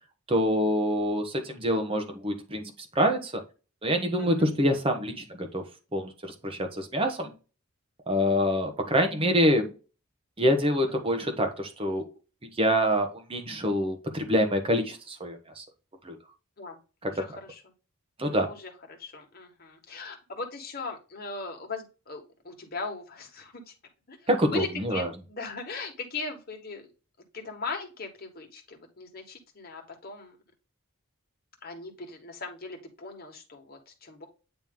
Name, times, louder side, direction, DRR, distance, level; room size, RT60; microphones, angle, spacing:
voice 1, 0.3-3.4 3.8-5.6 5.9-7.3 8.1-9.7 10.4-12.1 12.6-15.6 16.0-16.1 17.0-17.1 18.2-18.5 24.3-25.1, equal, 25° right, 4 dB, 1.1 m, -26 dB
voice 2, 17.0-17.6 18.2-23.6 24.1-24.2 24.5-26.9 27.3-30.4 31.6-34.2, left 3 dB, 45° left, 2 dB, 1.5 m, -39 dB
9.0 x 3.0 x 3.7 m, 0.33 s
head